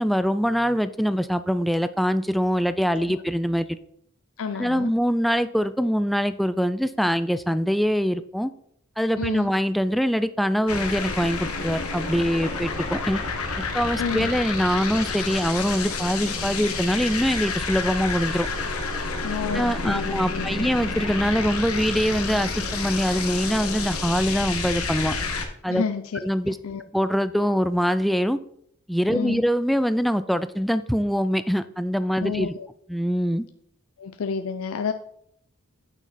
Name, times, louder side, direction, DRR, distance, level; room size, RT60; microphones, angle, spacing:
voice 1, 0.0-3.8 4.6-8.5 9.0-13.2 13.7-18.5 19.5-25.2 25.6-25.8 26.2-26.6 26.9-28.4 28.9-32.5 32.9-33.5, equal, ahead, 12 dB, 0.3 m, -23 dB
voice 2, 4.4-4.9 9.2-9.5 14.0-14.3 19.2-20.7 25.7-26.2 26.6-26.8 29.1-29.4 32.2-32.7 34.0-34.9, left 6 dB, 70° left, 9 dB, 0.4 m, -30 dB
sound 1, 10.7-25.5, left 4 dB, 90° left, 1.3 m, -29 dB
9.0 x 6.0 x 4.2 m, 0.70 s
head